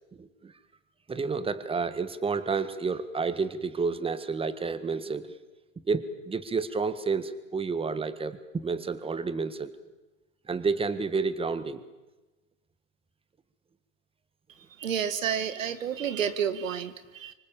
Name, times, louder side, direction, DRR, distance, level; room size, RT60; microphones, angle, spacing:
voice 1, 0.2-0.5 1.1-5.3 5.9-9.7 10.5-11.8, right 4 dB, 15° right, 12 dB, 1.7 m, -30 dB
voice 2, 14.8-17.3, right 8 dB, 80° right, 12 dB, 1.9 m, -30 dB
25.0 x 25.0 x 7.6 m, 1.1 s
hypercardioid pair, 100°, 39 cm